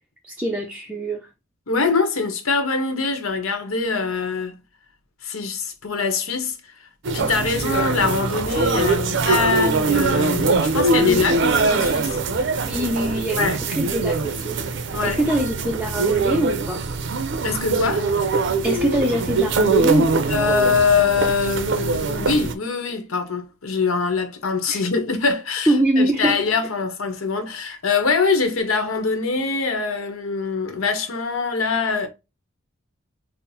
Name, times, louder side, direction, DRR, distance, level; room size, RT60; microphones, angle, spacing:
voice 1, 0.2-1.2 7.5-7.6 11.0-11.2 12.7-14.6 15.0-16.8 18.6-20.3 24.7-24.8 25.7-26.4, right 1 dB, 5° right, 0.4 m, -23 dB
voice 2, 1.7-4.5 5.2-6.6 7.1-12.2 13.4-13.6 14.9-15.2 17.4-18.1 20.3-32.1, left 4 dB, 90° left, 0.9 m, -23 dB
sound 1, 7.0-22.5, right 3 dB, 60° right, 0.5 m, -22 dB
5.6 x 2.0 x 2.7 m
head